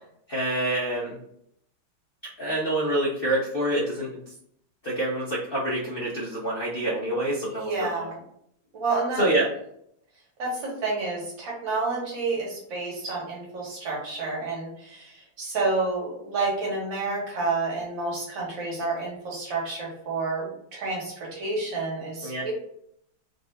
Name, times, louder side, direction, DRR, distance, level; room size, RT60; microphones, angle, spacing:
voice 1, 0.3-1.2 2.4-4.2 4.8-8.1 9.2-9.5 22.2-22.4, right 1 dB, 60° left, -5 dB, 0.6 m, -27 dB
voice 2, 7.5-8.2 8.7-9.3 10.4-22.5, right 3 dB, 70° right, -4 dB, 2.0 m, -29 dB
4.0 x 2.6 x 3.3 m, 0.71 s
omnidirectional pair, 2.2 m